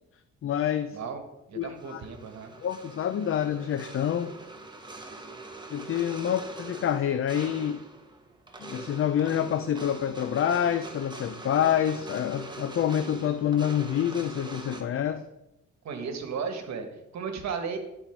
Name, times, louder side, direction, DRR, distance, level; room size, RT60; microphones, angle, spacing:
voice 1, 0.4-1.0 1.6-2.0 2.6-4.4 5.7-7.8 8.6-15.2, left 9 dB, 45° left, 10 dB, 0.5 m, -27 dB
voice 2, 0.9-1.2 1.5-2.5 6.2-6.3 15.8-17.8, right 6 dB, 65° right, 5 dB, 1.5 m, -35 dB
sound 1, 1.8-14.8, right 3 dB, 15° right, 1.1 m, -43 dB
10.5 x 4.4 x 4.5 m, 0.89 s
cardioid pair, 90°, 30 cm